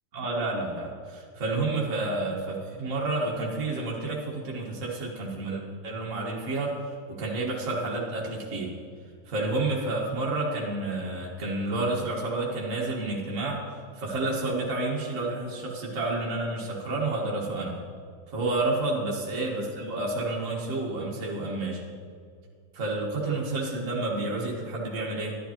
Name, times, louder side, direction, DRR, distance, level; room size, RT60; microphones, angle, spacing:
voice 1, 0.1-6.8 7.1-8.7 9.3-13.6 13.9-17.8 18.3-21.8 22.7-25.4, right 2 dB, 50° right, -4 dB, 0.9 m, -30 dB
12.0 x 10.5 x 2.9 m, 2.2 s
omnidirectional pair, 3.4 m